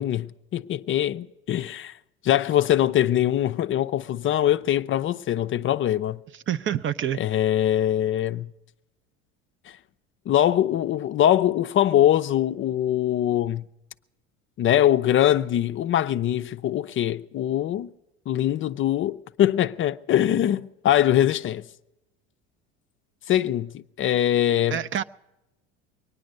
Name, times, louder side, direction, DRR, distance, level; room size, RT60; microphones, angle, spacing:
voice 1, 0.0-1.9 2.2-6.2 7.2-8.5 10.3-13.6 14.6-17.9 18.3-21.6 23.3-24.8, left 11 dB, 35° left, 0.4 m, -22 dB
voice 2, 6.5-7.2 24.7-25.0, right 10 dB, 35° right, 0.5 m, -26 dB
23.0 x 9.4 x 6.5 m
hypercardioid pair, 85°, 34 cm